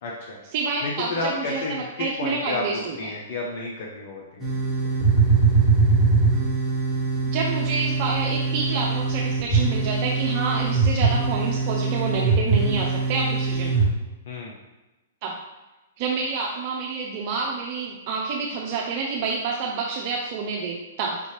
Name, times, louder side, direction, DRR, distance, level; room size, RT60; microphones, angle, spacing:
voice 1, 0.0-0.4 0.8-5.1 14.3-14.6, left 2 dB, 55° left, -2 dB, 0.8 m, -32 dB
voice 2, 0.5-3.0 7.3-13.9 15.2-15.4 16.0-21.2, right 4 dB, 45° right, -2 dB, 0.6 m, -28 dB
sound 1, 4.4-13.8, right 4 dB, ahead, 1.2 m, -22 dB
5.1 x 2.8 x 3.2 m, 1.1 s
hypercardioid pair, 125°, 0 cm